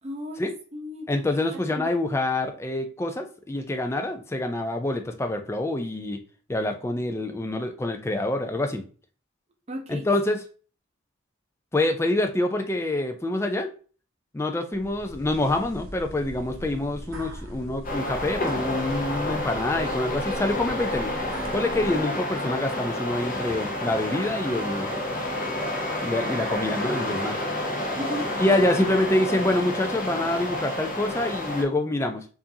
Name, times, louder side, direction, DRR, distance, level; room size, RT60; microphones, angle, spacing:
voice 1, 0.0-1.9 9.7-10.1 28.0-28.3, equal, 30° right, 3 dB, 0.6 m, -36 dB
voice 2, 1.1-6.2 6.5-8.8 9.9-10.4 11.7-13.7 14.3-21.1 21.5-24.9 26.0-27.4 28.4-32.3, left 1 dB, 10° left, 5 dB, 0.3 m, -26 dB
sound 1, 14.7-22.0, equal, 80° right, 0.9 m, -40 dB
sound 2, 17.8-31.6, left 1 dB, 40° left, 0.7 m, -30 dB
sound 3, 23.5-30.3, left 1 dB, 60° left, 1.1 m, -41 dB
4.7 x 2.6 x 2.7 m, 0.38 s
head